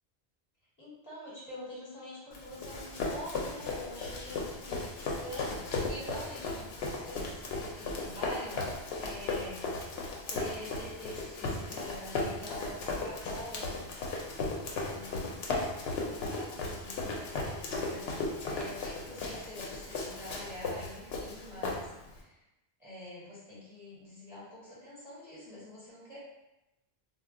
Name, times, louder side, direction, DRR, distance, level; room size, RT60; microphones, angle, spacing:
voice 1, 0.8-9.7 10.3-13.9 14.8-22.4 22.8-26.2, left 1 dB, 20° left, -9 dB, 1.2 m, -46 dB
Run, 2.3-22.2, left 3 dB, 75° left, 0.8 m, -36 dB
2.2 x 2.2 x 3.6 m, 0.93 s
omnidirectional pair, 1.0 m